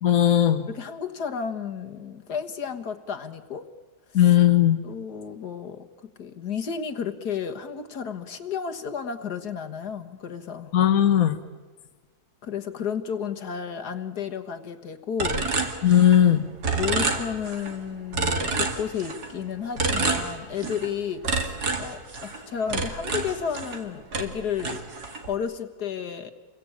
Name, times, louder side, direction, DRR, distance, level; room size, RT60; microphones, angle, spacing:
voice 1, 0.0-0.6 4.1-4.8 10.7-11.4 15.8-16.4, left 11 dB, 65° left, 6 dB, 1.6 m, -18 dB
voice 2, 0.7-3.6 4.2-4.3 4.8-5.9 6.2-10.7 12.4-15.5 16.7-24.8 25.3-26.3, left 7 dB, 80° left, 6 dB, 2.0 m, -32 dB
sound 1, 15.2-16.3 16.6-17.7 18.1-19.3 19.8-20.9 21.2-23.8 24.1-25.3, right 3 dB, 80° right, 2.8 m, -28 dB
28.5 x 22.5 x 8.7 m, 1.3 s
omnidirectional pair, 1.7 m